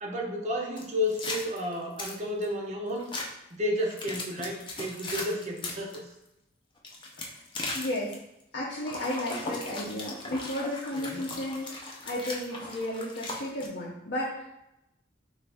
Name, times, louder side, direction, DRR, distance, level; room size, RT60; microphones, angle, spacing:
voice 1, 0.0-3.1 3.5-6.0 10.9-11.4, left 1 dB, 40° right, -1 dB, 0.7 m, -32 dB
sound 1, 0.8-2.5 3.0-3.3 3.8-6.0 6.8-8.1 8.8-13.7, left 2 dB, 25° left, 0.5 m, -38 dB
voice 2, 7.7-8.2 8.5-14.5, left 1 dB, 65° left, -5 dB, 0.7 m, -33 dB
3.9 x 2.5 x 3.4 m, 0.86 s
head